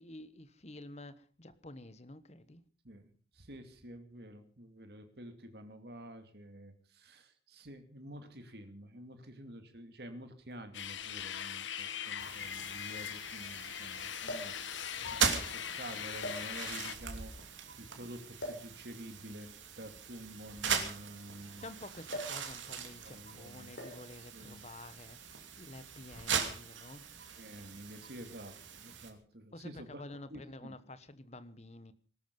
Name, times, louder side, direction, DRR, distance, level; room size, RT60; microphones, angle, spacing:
voice 1, 0.0-2.6 21.6-25.2 25.6-27.0 29.5-31.9, left 2 dB, 35° left, 13 dB, 1.2 m, -50 dB
voice 2, 2.8-14.9 15.3-19.5 19.8-21.6 23.0-23.7 24.2-24.6 27.4-30.0 30.3-30.7, right 1 dB, 55° right, 7 dB, 2.6 m, -49 dB
sound 1, 10.5-10.6 11.7-11.8 12.0-12.1 14.2-14.6 15.5-15.6 16.2-16.9 18.4-18.7 19.8-21.5 22.1-22.5 22.7-23.0 23.8-24.1 25.1-25.4, equal, 65° left, 6.5 m, -43 dB
sound 2, 10.7-17.0, left 9 dB, 85° left, 1.1 m, -41 dB
sound 3, 12.2-29.1, right 6 dB, 90° right, 2.9 m, -40 dB
20.0 x 13.0 x 5.5 m, 0.42 s
head